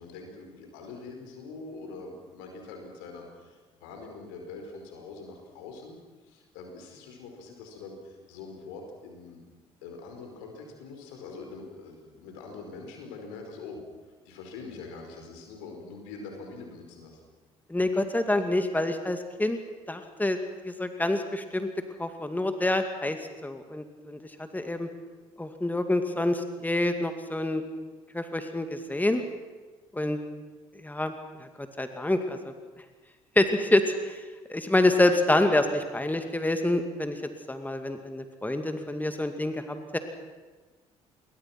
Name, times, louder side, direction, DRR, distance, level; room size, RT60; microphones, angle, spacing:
voice 1, 0.0-6.0 6.3-9.4 9.8-13.8 14.3-17.2, left 4 dB, 75° left, 3 dB, 5.1 m, -44 dB
voice 2, 17.7-19.6 19.9-20.4 20.6-21.7 22.0-24.2 24.5-24.9 25.4-27.6 28.1-29.2 29.9-30.2 30.8-31.1 31.8-32.5 33.4-34.2 34.5-37.2 37.5-40.0, left 1 dB, 10° left, 7 dB, 2.5 m, -27 dB
28.0 x 22.0 x 6.1 m, 1.3 s
hypercardioid pair, 50°, 16 cm